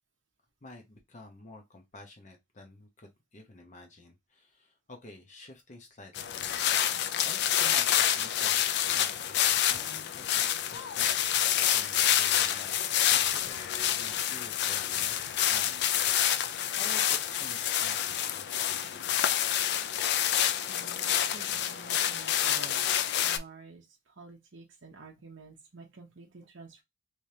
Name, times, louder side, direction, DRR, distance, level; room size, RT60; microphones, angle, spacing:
voice 1, 0.6-13.7 14.0-16.3 16.7-19.1, left 2 dB, 35° left, 0.8 m, -51 dB
sound 1, 6.2-23.4, left 10 dB, 50° left, 0.3 m, -28 dB
voice 2, 20.7-22.8 23.2-26.8, right 3 dB, 60° right, 0.8 m, -50 dB
3.2 x 3.2 x 2.8 m
head